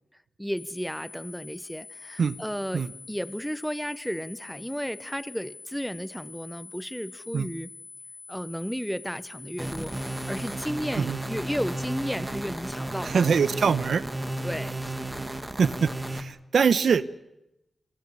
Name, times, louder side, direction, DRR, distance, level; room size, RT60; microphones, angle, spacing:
voice 1, 0.4-7.7 8.3-9.9 10.3-13.2 14.4-15.1, equal, ahead, 17 dB, 0.9 m, -33 dB
sound 1, 0.6-10.6, left 4 dB, 50° left, 1.4 m, -46 dB
sound 2, 9.6-16.2, right 1 dB, 15° right, 1.6 m, -33 dB
voice 2, 13.0-14.0 15.6-17.1, right 6 dB, 80° right, 16 dB, 0.8 m, -23 dB
27.0 x 22.0 x 6.9 m, 0.89 s
wide cardioid pair, 80°, 0 cm